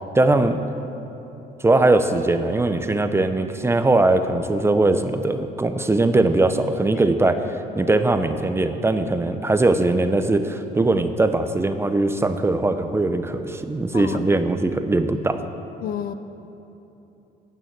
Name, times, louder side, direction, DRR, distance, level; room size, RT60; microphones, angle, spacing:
voice 1, 0.1-0.6 1.6-15.4, right 2 dB, 15° right, 8 dB, 0.7 m, -20 dB
voice 2, 15.8-16.1, left 10 dB, 60° left, 11 dB, 0.7 m, -29 dB
12.5 x 9.1 x 7.7 m, 3.0 s
cardioid pair, 110°, 17 cm